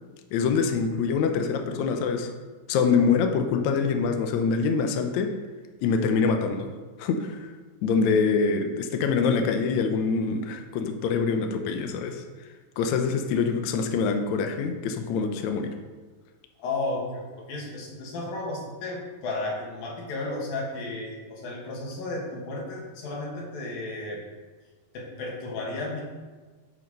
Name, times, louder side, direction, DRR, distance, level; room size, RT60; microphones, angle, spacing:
voice 1, 0.3-2.3 2.7-5.3 5.8-6.7 7.0-7.5 7.8-12.2 12.8-15.7, left 5 dB, 70° left, 6 dB, 1.9 m, -25 dB
voice 2, 16.6-24.2 24.9-26.0, left 2 dB, 90° left, -1 dB, 3.7 m, -33 dB
13.5 x 5.7 x 5.4 m, 1.4 s
omnidirectional pair, 4.0 m